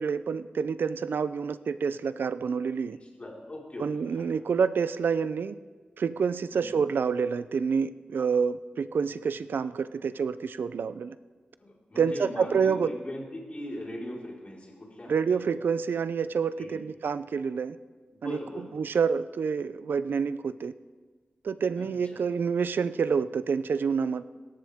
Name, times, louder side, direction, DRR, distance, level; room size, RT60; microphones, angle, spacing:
voice 1, 0.0-3.0 3.8-5.6 6.0-11.2 12.0-12.9 15.1-17.8 18.2-18.4 18.7-20.7 21.4-24.3, right 6 dB, 90° right, 14 dB, 0.5 m, -28 dB
voice 2, 3.0-4.3 6.5-6.7 11.6-15.5 16.6-16.8 18.2-18.8 21.8-22.3, left 1 dB, 40° left, -4 dB, 4.7 m, -40 dB
25.0 x 13.5 x 3.6 m, 1.4 s
wide cardioid pair, 105°, 3 cm